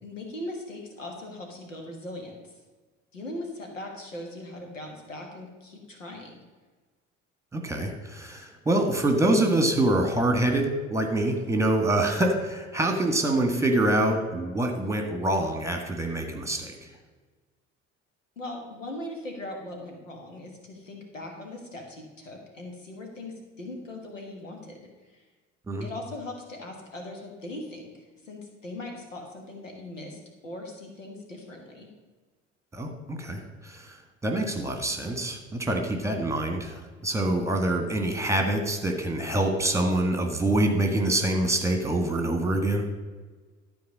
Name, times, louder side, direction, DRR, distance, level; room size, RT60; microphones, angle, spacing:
voice 1, 0.0-2.4 3.1-6.4 18.4-25.2 25.8-27.9 28.2-31.9, left 1 dB, 85° left, 2 dB, 1.5 m, -40 dB
voice 2, 7.5-16.9 25.7-25.9 32.7-33.9 34.2-42.8, right 1 dB, 10° right, 4 dB, 1.7 m, -25 dB
12.5 x 4.5 x 6.2 m, 1.3 s
figure-of-eight pair, 55°, 37 cm